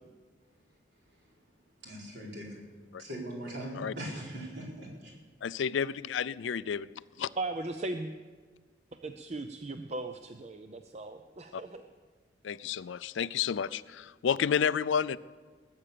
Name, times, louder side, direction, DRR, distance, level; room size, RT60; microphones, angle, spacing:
voice 1, 1.8-2.6 3.0-5.1, right 1 dB, 60° right, -3 dB, 4.5 m, -40 dB
voice 2, 5.4-6.9 7.2-7.3 11.5-11.6 12.4-15.2, left 7 dB, 80° left, 18 dB, 0.4 m, -30 dB
voice 3, 7.4-8.1 9.0-11.8, right 2 dB, 35° right, 7 dB, 0.5 m, -37 dB
20.0 x 8.9 x 6.8 m, 1.5 s
head